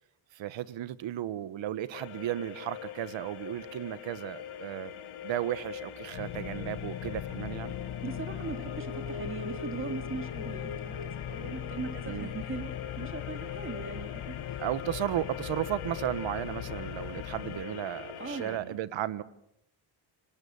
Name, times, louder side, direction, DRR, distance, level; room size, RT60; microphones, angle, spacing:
voice 1, 0.3-4.9 5.2-7.8 12.1-12.3 14.6-19.2, right 12 dB, 65° right, 15 dB, 1.4 m, -34 dB
sound 1, 1.9-18.6, left 7 dB, 80° left, 4.2 m, -42 dB
sound 2, 6.1-17.6, left 11 dB, 55° left, 1.1 m, -40 dB
voice 2, 8.0-14.7 18.2-18.8, right 4 dB, 25° right, 7 dB, 2.5 m, -40 dB
29.5 x 24.5 x 7.1 m, 0.76 s
cardioid pair, 170°, 49 cm